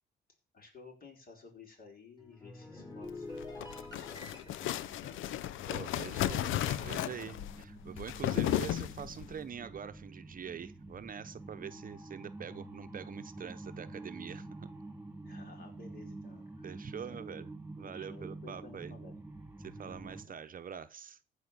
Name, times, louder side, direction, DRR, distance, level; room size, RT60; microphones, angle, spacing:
voice 1, 0.5-5.4 5.8-6.3 15.2-17.5 17.8-19.1 19.8-20.4, left 4 dB, 45° left, 5.0 m, -55 dB
sound 1, 2.2-6.8 7.1-7.4, left 2 dB, 20° left, 5.7 m, -48 dB
sound 2, 3.3-9.3, left 13 dB, 80° left, 0.6 m, -34 dB
sound 3, 4.1-20.2, right 2 dB, 5° right, 2.6 m, -48 dB
voice 2, 5.7-14.7 16.6-17.5 17.8-18.9 19.6-21.2, right 7 dB, 45° right, 0.9 m, -44 dB
15.0 x 5.0 x 7.0 m
cardioid pair, 90°, 20 cm